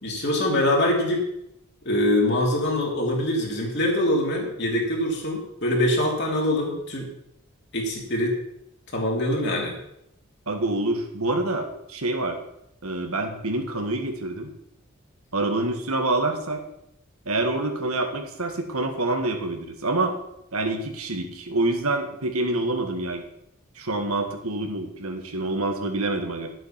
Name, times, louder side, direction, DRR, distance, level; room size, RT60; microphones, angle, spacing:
voice 1, 0.0-1.3 1.8-7.1 7.7-8.4 8.9-9.7, left 1 dB, 50° left, -1 dB, 3.1 m, -24 dB
voice 2, 10.5-12.4 12.8-14.5 15.3-16.6 17.3-20.2 20.5-23.2 23.8-26.5, right 2 dB, 80° right, 4 dB, 1.8 m, -26 dB
11.5 x 7.8 x 5.8 m, 0.78 s
head